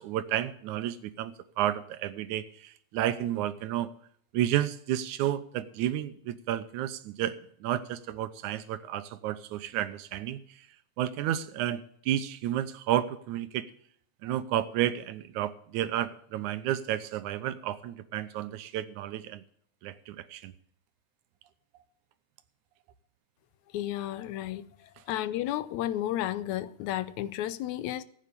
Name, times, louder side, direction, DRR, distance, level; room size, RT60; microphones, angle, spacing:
voice 1, 0.0-3.9 4.3-10.7 11.0-13.7 14.2-19.4 19.8-20.5, right 12 dB, 85° right, 2.3 m, -31 dB
voice 2, 23.7-24.7 25.1-28.0, left 13 dB, 80° left, 2.1 m, -32 dB
15.5 x 8.8 x 6.8 m
omnidirectional pair, 3.4 m